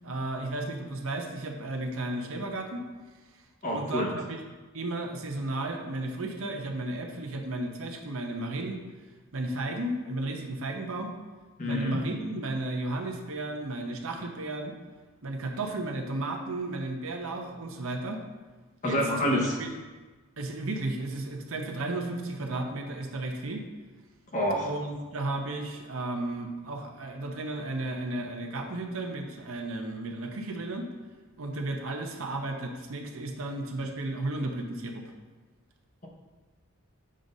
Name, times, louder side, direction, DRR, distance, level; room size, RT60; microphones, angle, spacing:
voice 1, 0.0-2.9 3.7-4.4 4.7-8.8 9.3-11.1 11.6-14.8 15.2-18.2 18.8-19.0 19.6-19.7 20.4-23.6 24.6-30.9 31.4-35.1, right 2 dB, 65° right, 3 dB, 0.7 m, -34 dB
voice 2, 3.6-4.1 11.6-12.0 18.8-19.6 24.3-24.7, equal, 35° left, -1 dB, 0.9 m, -27 dB
7.5 x 2.6 x 5.3 m, 1.3 s
head